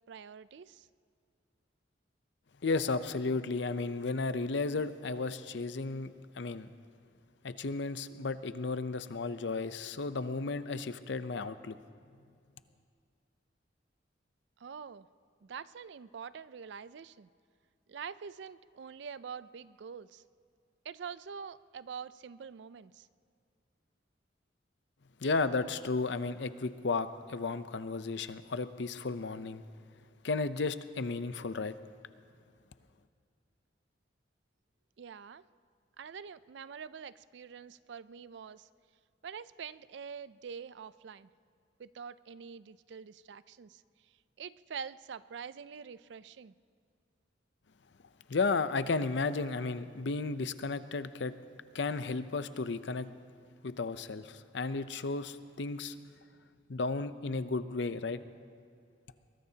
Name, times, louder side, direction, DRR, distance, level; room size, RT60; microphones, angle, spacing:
voice 1, 0.1-0.9 14.6-15.1 15.4-17.3 17.9-20.2 20.8-23.1 35.0-35.4 36.0-38.7 39.2-41.3 41.8-44.1 44.4-46.5, right 6 dB, 65° right, 16 dB, 0.4 m, -45 dB
voice 2, 2.6-6.7 7.4-11.8 25.2-29.6 30.2-31.7 48.3-51.3 51.7-53.1 53.6-55.9 56.7-58.2, left 3 dB, 65° left, 12 dB, 0.6 m, -33 dB
22.5 x 21.5 x 2.8 m, 2.4 s
head